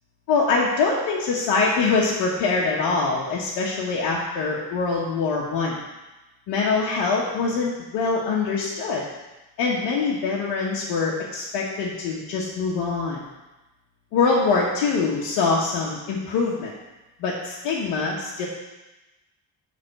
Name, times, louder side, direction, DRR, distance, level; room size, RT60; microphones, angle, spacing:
voice 1, 0.3-5.8 6.5-9.0 9.6-13.2 14.1-16.7 17.2-18.5, left 4 dB, 90° left, -4 dB, 1.2 m, -24 dB
10.5 x 3.7 x 6.5 m, 1.1 s
supercardioid pair, 70°, 42 cm